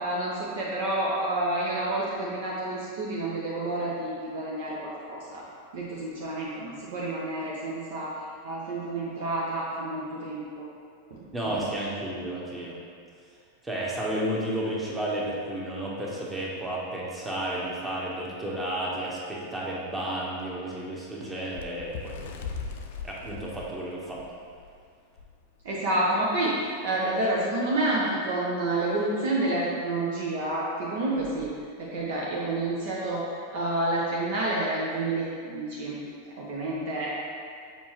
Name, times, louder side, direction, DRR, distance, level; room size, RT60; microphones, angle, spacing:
voice 1, 0.0-5.4 5.7-8.1 8.4-10.6 11.1-11.2 25.6-26.6 26.8-31.5 31.8-33.3 33.5-36.0 36.4-37.1, right 2 dB, 55° right, -5 dB, 0.8 m, -29 dB
voice 2, 11.3-12.8 13.6-22.3 23.0-24.2, right 1 dB, 10° right, -5 dB, 1.2 m, -32 dB
Bird, 21.5-24.7 25.2-25.3 25.6-25.9 26.7-26.8, left 5 dB, 55° left, 0.5 m, -39 dB
7.2 x 4.4 x 3.0 m, 2.3 s
figure-of-eight pair, 90°, 0 cm